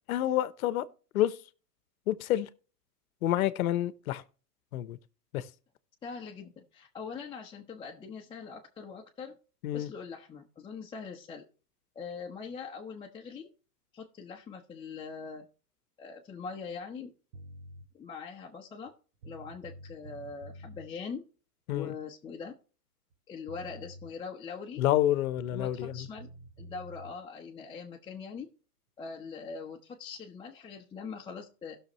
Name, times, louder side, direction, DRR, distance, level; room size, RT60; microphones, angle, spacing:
voice 1, 0.1-0.9 1.1-1.3 2.1-2.5 3.2-4.2 4.7-5.0 5.3-5.4 9.6-9.9 21.7-21.9 24.8-26.1, left 13 dB, 60° left, 1.0 m, -28 dB
voice 2, 6.0-9.4 9.7-11.4 11.9-13.5 13.9-15.5 16.0-17.1 17.9-18.9 19.2-21.2 21.7-22.6 23.3-24.8 25.5-26.3 26.6-28.5 29.0-31.8, left 5 dB, 10° left, 0.9 m, -42 dB
sound 1, 17.3-17.9 18.9-19.0 19.2-20.9 23.1-23.2 23.5-24.1 25.4-27.1, right 1 dB, 25° right, 0.4 m, -48 dB
17.0 x 6.5 x 3.1 m
hypercardioid pair, 135°, 48 cm